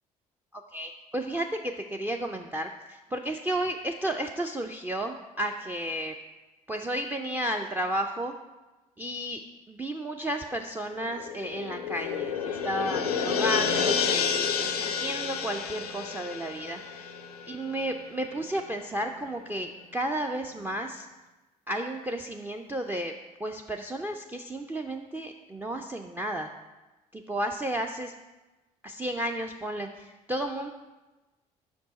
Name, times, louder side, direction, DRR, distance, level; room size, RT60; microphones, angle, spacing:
voice 1, 0.5-6.1 6.7-8.3 9.0-9.4 9.7-17.1 17.5-21.1 21.7-23.1 23.4-26.5 27.1-28.1 28.8-30.7, right 1 dB, 10° right, 4 dB, 0.4 m, -33 dB
sound 1, 10.9-17.9 18.2-18.3, left 6 dB, 90° left, 0.4 m, -30 dB
5.7 x 5.2 x 4.1 m, 1.1 s
figure-of-eight pair, 50°, 19 cm